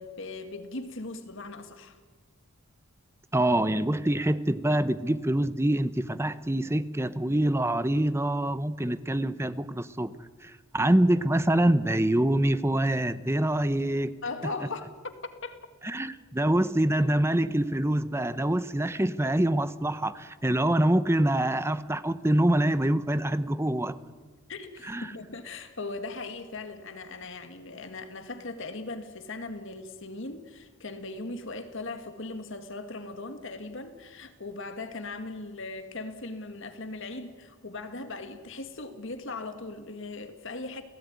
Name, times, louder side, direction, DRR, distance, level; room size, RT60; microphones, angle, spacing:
voice 1, 0.0-2.0 14.2-15.6 24.5-40.8, left 3 dB, 60° left, 1.9 m, -39 dB
voice 2, 3.3-10.1 10.4-14.1 15.8-24.0 24.8-25.1, right 1 dB, 10° right, 0.8 m, -25 dB
30.0 x 17.0 x 9.5 m
head